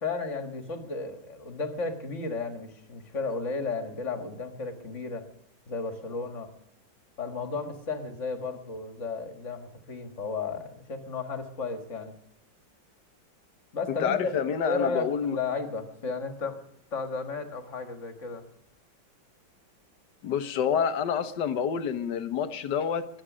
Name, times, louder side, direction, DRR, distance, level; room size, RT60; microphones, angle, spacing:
voice 1, 0.0-5.3 5.7-6.5 7.2-12.1 13.7-16.6 16.9-18.5, left 4 dB, 40° left, 7 dB, 2.1 m, -34 dB
voice 2, 14.0-15.4 20.2-23.1, left 7 dB, 65° left, 11 dB, 1.6 m, -28 dB
22.5 x 9.0 x 6.2 m, 0.75 s
omnidirectional pair, 2.1 m